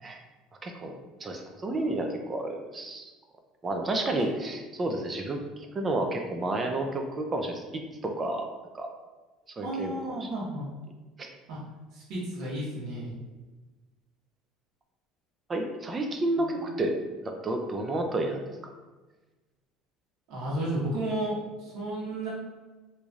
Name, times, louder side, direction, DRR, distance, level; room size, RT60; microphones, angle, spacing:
voice 1, 0.6-3.1 3.6-7.6 8.0-8.5 8.7-8.9 9.6-9.9 10.2-10.3 15.5-16.9 17.2-18.4, right 2 dB, 20° right, 3 dB, 0.4 m, -30 dB
voice 2, 9.6-10.7 11.5-11.6 11.9-13.2 16.4-16.7 20.3-22.3, right 1 dB, 65° right, -6 dB, 1.1 m, -33 dB
4.0 x 3.1 x 2.4 m, 1.2 s
cardioid pair, 145°, 0 cm